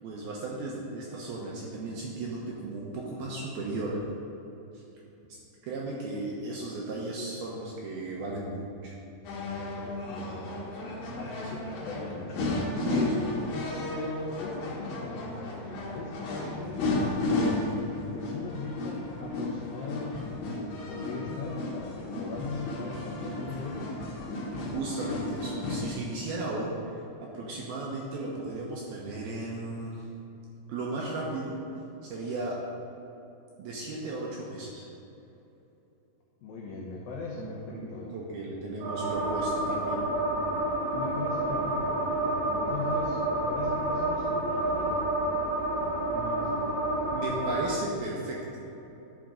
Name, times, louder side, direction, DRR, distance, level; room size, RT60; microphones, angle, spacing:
voice 1, 0.0-4.0 4.7-4.8 5.6-8.9 12.9-13.1 16.4-16.6 24.7-26.7 27.2-30.0 30.7-31.6 32.0-32.6 33.6-34.9 37.4-40.0 46.1-46.4 47.1-48.4, right 2 dB, 70° right, -3 dB, 2.4 m, -35 dB
sound 1, 9.2-25.9, left 2 dB, 60° left, 2.6 m, -33 dB
voice 2, 9.6-10.5 11.2-12.6 12.8-13.6 13.9-23.9 36.4-38.1 40.9-45.0, left 3 dB, 90° left, -3 dB, 2.0 m, -39 dB
sound 2, 38.8-47.7, right 2 dB, 50° right, 2.4 m, -29 dB
11.5 x 6.1 x 5.1 m, 3.0 s
omnidirectional pair, 5.5 m